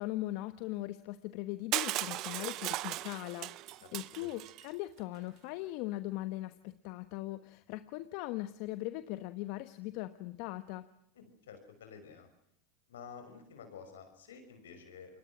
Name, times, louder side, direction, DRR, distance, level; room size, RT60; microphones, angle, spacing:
voice 1, 0.0-10.9, left 17 dB, 65° left, 11 dB, 1.1 m, -40 dB
Crushing, 1.7-4.6, right 17 dB, 55° right, 0.9 m, -37 dB
voice 2, 3.8-4.3 11.1-12.3 12.9-15.2, left 6 dB, 85° left, 8 dB, 5.8 m, -51 dB
28.5 x 22.5 x 6.2 m, 0.71 s
hypercardioid pair, 95°, 0 cm